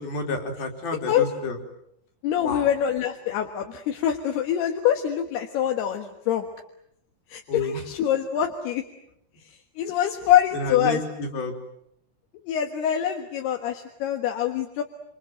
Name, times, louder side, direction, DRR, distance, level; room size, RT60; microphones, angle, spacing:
voice 1, 0.0-1.6 2.4-2.7 7.5-7.8 10.5-11.5, left 2 dB, 65° left, 3 dB, 5.5 m, -29 dB
voice 2, 2.2-6.5 7.3-8.8 9.8-11.0 12.4-14.8, left 10 dB, 80° left, 3 dB, 3.6 m, -24 dB
28.0 x 27.5 x 7.8 m, 0.76 s
omnidirectional pair, 4.6 m